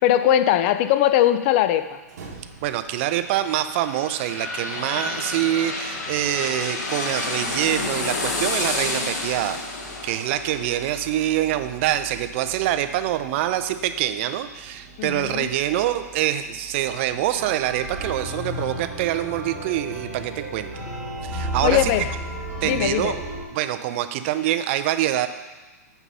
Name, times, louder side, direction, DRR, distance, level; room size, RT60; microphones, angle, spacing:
voice 1, 0.0-2.0 15.0-15.5 21.6-22.1 22.6-23.1, left 12 dB, 40° left, 12 dB, 0.4 m, -20 dB
sound 1, 1.9-20.1, right 3 dB, 70° right, 1.5 m, -48 dB
voice 2, 2.6-9.6 10.0-20.7 21.2-21.9 22.6-23.2 23.5-25.3, right 12 dB, 45° right, 10 dB, 0.5 m, -25 dB
sound 2, 3.1-12.7 13.1-13.2, left 2 dB, 80° left, 1.5 m, -30 dB
sound 3, 17.3-23.4, right 2 dB, 20° right, 2.3 m, -32 dB
5.9 x 5.6 x 5.4 m, 1.2 s
hypercardioid pair, 140°, 9 cm